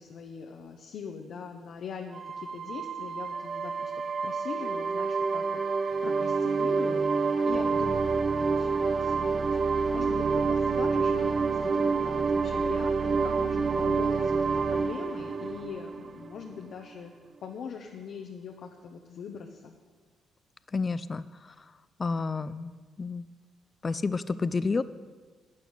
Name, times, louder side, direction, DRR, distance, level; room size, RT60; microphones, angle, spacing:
voice 1, 0.0-3.9 4.2-7.0 7.4-17.1 17.4-19.7, left 6 dB, 65° left, 2 dB, 0.9 m, -42 dB
sound 1, 2.1-16.6, right 4 dB, 40° right, 0.4 m, -28 dB
voice 2, 20.7-21.2 22.0-22.7 23.0-23.2 23.8-24.8, left 4 dB, 30° left, 15 dB, 0.4 m, -29 dB
11.0 x 8.5 x 6.5 m, 1.4 s
cardioid pair, 90°, 0 cm